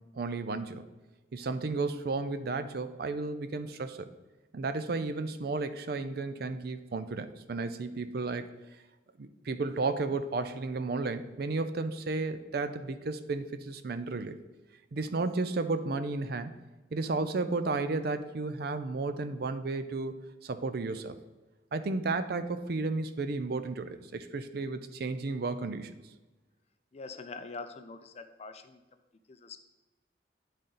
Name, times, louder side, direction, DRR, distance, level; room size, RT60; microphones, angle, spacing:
voice 1, 0.1-0.8 1.3-4.1 4.5-8.5 9.2-14.4 14.9-16.5 16.9-20.1 20.4-21.2 21.7-25.9, right 3 dB, 60° right, 11 dB, 0.5 m, -33 dB
voice 2, 26.9-28.8 29.3-29.6, left 4 dB, 35° left, 9 dB, 0.5 m, -44 dB
10.0 x 4.0 x 3.8 m, 1.1 s
head